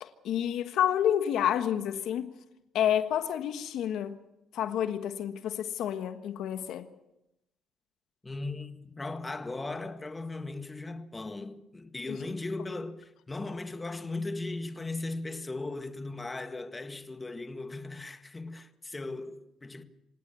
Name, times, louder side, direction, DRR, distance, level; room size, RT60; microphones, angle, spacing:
voice 1, 0.0-2.3 2.7-4.2 4.5-6.9 12.1-12.2, left 10 dB, 75° left, 1.4 m, -29 dB
voice 2, 8.2-19.8, left 2 dB, 20° left, 1.8 m, -37 dB
27.0 x 17.5 x 7.0 m
cardioid pair, 100°, 0 cm